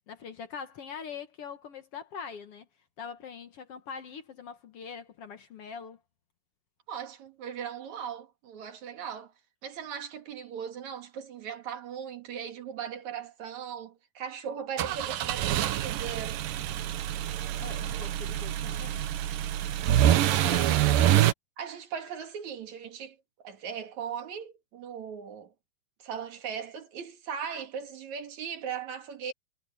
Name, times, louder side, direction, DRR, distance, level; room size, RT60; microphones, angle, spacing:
voice 1, 0.1-2.6 3.0-6.0 17.6-19.1 20.1-21.2, left 6 dB, 65° left, 1.4 m, -43 dB
voice 2, 6.9-9.3 9.6-16.4 21.6-25.5 26.0-29.3, right 7 dB, 55° right, 3.0 m, -38 dB
sound 1, 14.8-21.3, right 12 dB, 70° right, 2.5 m, -26 dB
omnidirectional pair, 4.4 m